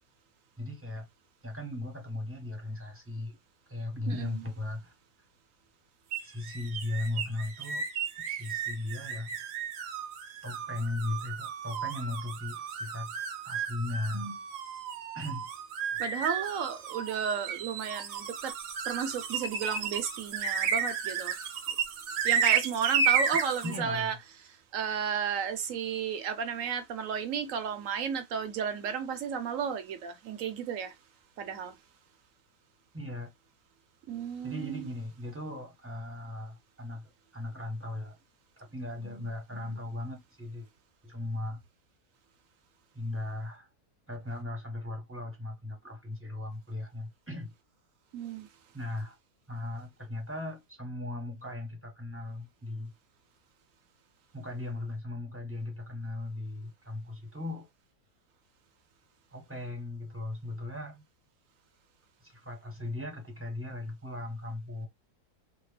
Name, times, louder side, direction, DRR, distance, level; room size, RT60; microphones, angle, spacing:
voice 1, 0.6-1.1 1.4-3.4 3.7-4.9 6.2-7.9 8.2-9.3 10.4-13.1 13.4-14.4 15.1-15.5 15.9-16.0 17.2-17.3 23.6-24.2 32.9-33.3 34.4-38.2 38.6-40.7 41.0-41.6 42.9-43.7 44.1-47.5 48.7-49.2 49.5-52.9 54.3-57.7 59.3-61.0 62.2-64.9, left 2 dB, 10° right, 0.7 m, -37 dB
sound 1, 6.1-23.8, right 6 dB, 85° right, 1.2 m, -33 dB
voice 2, 16.0-18.5 18.9-21.3 22.2-24.1 24.7-30.9 31.4-31.7 34.1-34.9 48.1-48.5, right 7 dB, 65° right, 0.9 m, -33 dB
3.6 x 2.1 x 3.2 m
omnidirectional pair, 1.7 m